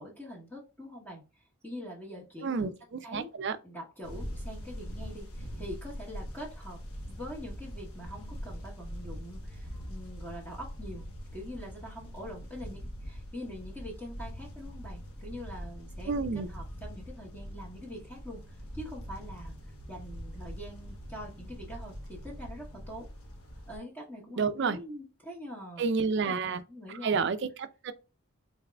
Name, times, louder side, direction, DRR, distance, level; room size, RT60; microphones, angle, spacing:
voice 1, 0.0-2.7 3.0-3.3 3.6-6.8 7.0-23.1 23.7-25.9 26.2-27.3, equal, 10° left, 0.9 m, -44 dB
voice 2, 2.4-3.6 16.1-16.5 24.4-24.8 25.8-26.6 27.0-27.9, right 5 dB, 50° right, 0.4 m, -30 dB
sound 1, 4.0-23.8, equal, 80° left, 1.1 m, -43 dB
3.9 x 3.6 x 2.2 m
head